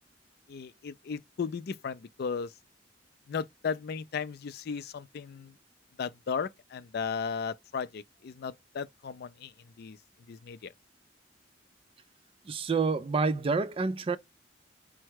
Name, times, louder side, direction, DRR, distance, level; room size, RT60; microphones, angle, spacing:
voice 1, 0.5-2.5 3.3-5.5 6.0-9.5 9.8-10.0 10.3-10.7, left 6 dB, 60° left, 0.4 m, -35 dB
voice 2, 12.5-14.2, right 4 dB, 30° right, 0.4 m, -28 dB
4.5 x 2.1 x 4.6 m
head